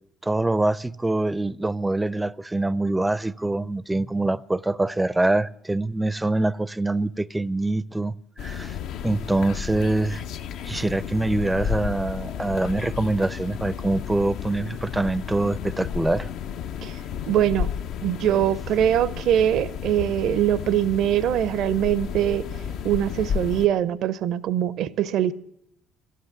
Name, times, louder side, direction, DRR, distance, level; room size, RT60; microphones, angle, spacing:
voice 1, 0.2-8.1 8.4-8.8 9.0-10.2 10.6-16.3, right 2 dB, 10° right, 0.4 m, -24 dB
sound 1, 8.4-23.7, left 8 dB, 60° left, 0.5 m, -32 dB
voice 2, 17.3-17.7 18.0-22.5 22.8-25.3, right 11 dB, 60° right, 0.5 m, -22 dB
13.0 x 9.3 x 9.6 m
figure-of-eight pair, 55°, 0 cm